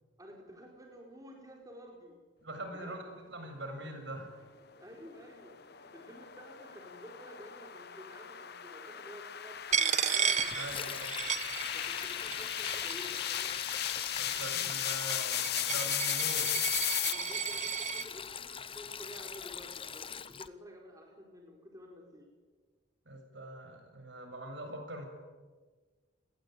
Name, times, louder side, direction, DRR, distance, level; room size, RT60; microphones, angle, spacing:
voice 1, 0.2-2.2 2.7-3.0 4.8-13.6 17.0-22.3, equal, 15° right, 0 dB, 4.5 m, -51 dB
voice 2, 2.4-4.3 10.6-11.1 14.1-16.5 23.1-25.1, right 1 dB, 65° right, 5 dB, 7.2 m, -43 dB
sound 1, 5.1-17.1, left 12 dB, 55° left, 1.0 m, -36 dB
Coin (dropping), 9.7-12.0 12.3-13.1 13.8-18.1, right 8 dB, 35° right, 1.1 m, -34 dB
Sink (filling or washing), 10.4-20.5, left 7 dB, 25° left, 0.8 m, -42 dB
29.0 x 21.0 x 9.3 m, 1.4 s
head